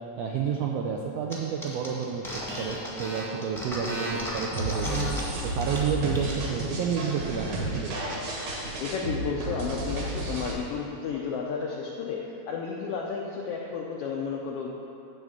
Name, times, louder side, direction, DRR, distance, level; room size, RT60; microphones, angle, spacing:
voice 1, 0.2-5.1 5.4-8.0, right 7 dB, 85° right, 0 dB, 1.4 m, -30 dB
sound 1, 1.3-1.4 1.6-5.2 5.6-5.8 6.1-6.6, equal, ahead, 0.8 m, -34 dB
sound 2, 4.5-10.5, right 1 dB, 60° right, 2.3 m, -32 dB
voice 2, 8.8-12.2 12.5-14.7, left 5 dB, 80° left, -1 dB, 1.3 m, -32 dB
10.5 x 3.6 x 7.3 m, 2.9 s
omnidirectional pair, 3.4 m